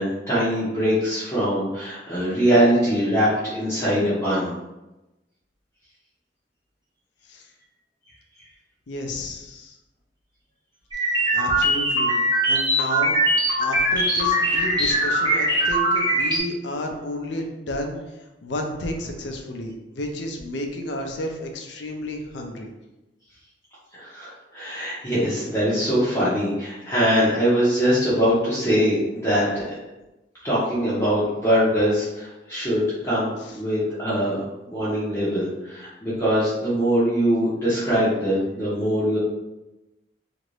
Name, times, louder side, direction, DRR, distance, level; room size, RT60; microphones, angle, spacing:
voice 1, 0.0-4.5 23.9-29.6 30.4-34.4 34.7-39.2, equal, 15° left, -11 dB, 0.7 m, -22 dB
voice 2, 8.9-9.8 11.3-12.2 12.5-13.2 13.6-18.0 18.4-22.7 33.4-33.6, left 1 dB, 75° left, 3 dB, 0.5 m, -31 dB
sound 1, 10.9-16.4, right 1 dB, 25° right, 0.7 m, -21 dB
2.9 x 2.5 x 3.1 m, 1.0 s
head